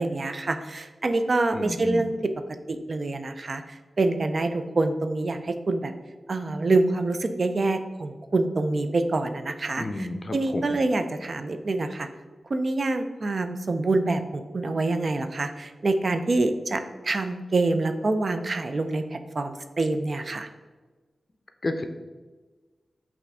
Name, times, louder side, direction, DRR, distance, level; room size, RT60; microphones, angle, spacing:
voice 1, 0.0-2.2 2.7-5.9 6.3-12.1 12.5-20.5, right 2 dB, 60° right, 8 dB, 0.3 m, -26 dB
voice 2, 1.5-2.1 9.8-10.8 21.6-21.9, left 2 dB, 45° left, 7 dB, 0.4 m, -31 dB
5.7 x 2.6 x 3.4 m, 1.3 s
cardioid pair, 50°, 0 cm